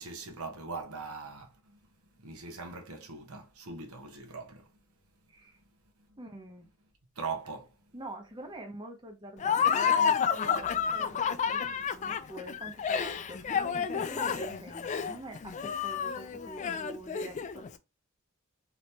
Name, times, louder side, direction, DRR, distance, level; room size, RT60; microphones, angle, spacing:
voice 1, 0.0-1.8 2.2-4.7 7.2-7.7, right 4 dB, 90° right, 0.8 m, -41 dB
voice 2, 6.2-6.7 7.9-17.7, right 1 dB, 20° right, 0.7 m, -45 dB
Laughter, 9.4-17.7, left 7 dB, 35° left, 0.3 m, -30 dB
2.9 x 2.7 x 3.2 m
head